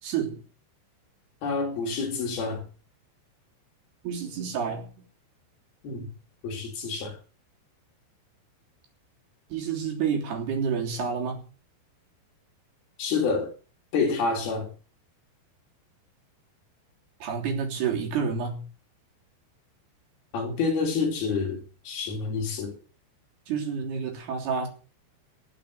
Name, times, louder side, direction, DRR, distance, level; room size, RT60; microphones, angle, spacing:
voice 1, 0.0-0.4 4.0-5.0 9.5-11.4 17.2-18.6 23.5-24.7, right 6 dB, 55° right, 5.1 m, -29 dB
voice 2, 1.4-2.6 5.8-6.1 6.4-7.2 13.0-13.5 13.9-14.7 20.3-22.8, left 4 dB, 50° left, 5.1 m, -28 dB
19.5 x 7.5 x 6.9 m
omnidirectional pair, 5.9 m